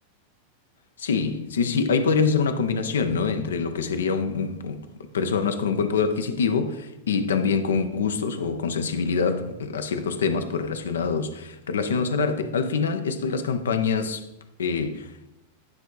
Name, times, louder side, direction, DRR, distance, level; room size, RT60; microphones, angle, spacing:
voice 1, 1.0-4.8 5.1-14.2 14.6-15.1, left 5 dB, 65° left, 0.7 m, -25 dB
9.5 x 3.4 x 4.8 m
figure-of-eight pair, 90°, 0 cm